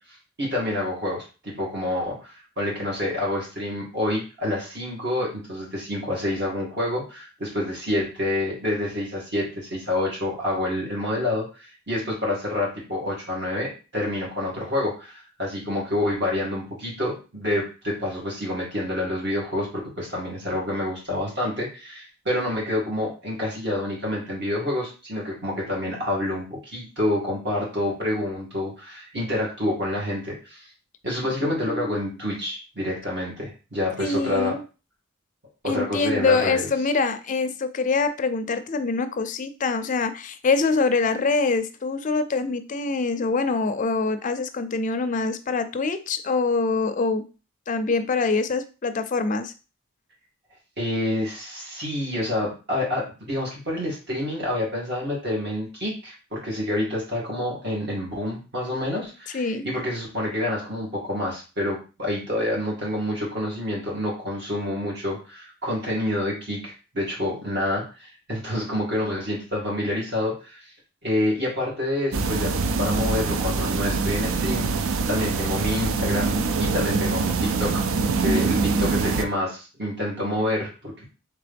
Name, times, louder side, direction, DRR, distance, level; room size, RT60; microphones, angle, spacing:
voice 1, 0.4-30.7 31.0-34.6 35.6-36.7 50.8-70.7 71.0-77.8 78.2-81.1, left 1 dB, 55° right, -4 dB, 2.2 m, -28 dB
voice 2, 31.2-32.1 34.0-34.6 35.7-47.2 47.7-49.5 59.3-59.6, left 4 dB, 40° left, 10 dB, 0.4 m, -25 dB
sound 1, 72.1-79.2, right 4 dB, 75° right, 0.4 m, -24 dB
3.8 x 3.3 x 3.4 m, 0.33 s
head